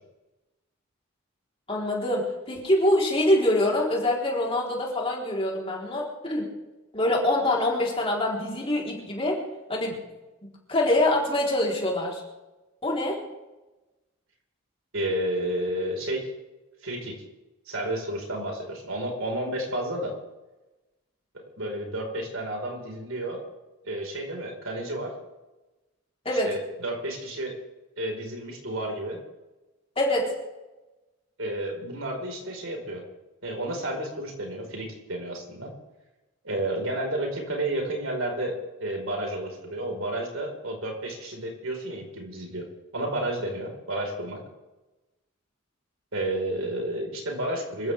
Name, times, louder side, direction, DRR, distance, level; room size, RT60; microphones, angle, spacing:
voice 1, 1.7-6.5 6.9-9.4 9.7-10.0 10.4-12.2 12.8-13.2 26.2-26.5 30.0-30.3, left 1 dB, 25° left, -3 dB, 4.1 m, -25 dB
voice 2, 14.9-16.3 16.8-17.2 17.7-20.1 21.3-23.4 23.8-25.1 26.4-27.6 27.9-29.2 31.4-33.0 33.4-35.7 36.4-42.7 42.9-44.4 46.1-47.9, right 1 dB, 75° right, 1 dB, 5.1 m, -31 dB
26.0 x 15.0 x 3.6 m, 1.1 s
head